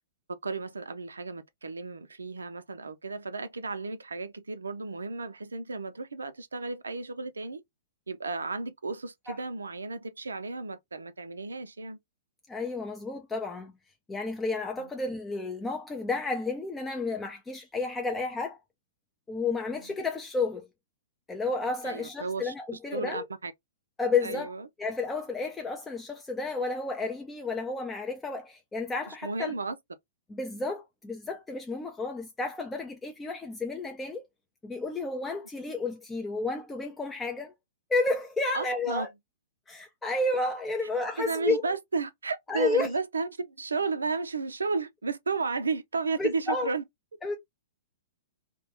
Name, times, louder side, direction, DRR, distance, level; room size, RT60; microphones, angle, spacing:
voice 1, 0.4-7.6 8.1-12.0 14.8-14.9 21.8-23.5 24.2-24.7 29.1-29.7 38.5-39.1 40.8-40.9 41.3-46.8, right 4 dB, 85° right, 0.4 m, -33 dB
voice 2, 12.5-13.7 14.1-18.6 19.3-20.7 21.3-23.3 24.0-29.5 30.3-34.2 34.6-37.5 37.9-39.1 39.7-41.6 42.5-42.9 46.2-46.7 47.2-47.4, left 3 dB, 10° left, 0.4 m, -31 dB
2.2 x 2.1 x 2.8 m
hypercardioid pair, 115°, 0 cm